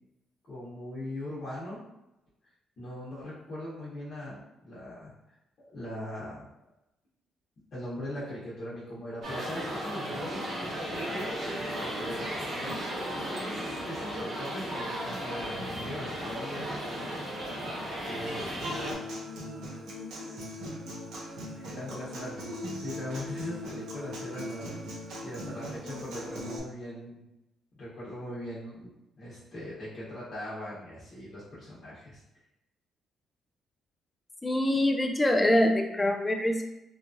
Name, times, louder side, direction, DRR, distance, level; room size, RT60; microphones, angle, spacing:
voice 1, 0.5-1.8 2.8-5.1 5.7-6.5 7.7-11.3 11.8-12.8 13.1-17.4 18.0-18.5 21.5-24.8 25.2-27.3 27.7-32.2, left 1 dB, 55° left, -9 dB, 1.0 m, -40 dB
sound 1, 9.2-18.9, equal, 60° right, 1.0 m, -35 dB
Human voice / Acoustic guitar, 18.6-26.6, left 1 dB, 80° right, 0.7 m, -39 dB
voice 2, 34.4-36.7, left 1 dB, 15° left, 3 dB, 0.4 m, -24 dB
3.0 x 2.4 x 2.6 m, 0.92 s
cardioid pair, 90°, 0 cm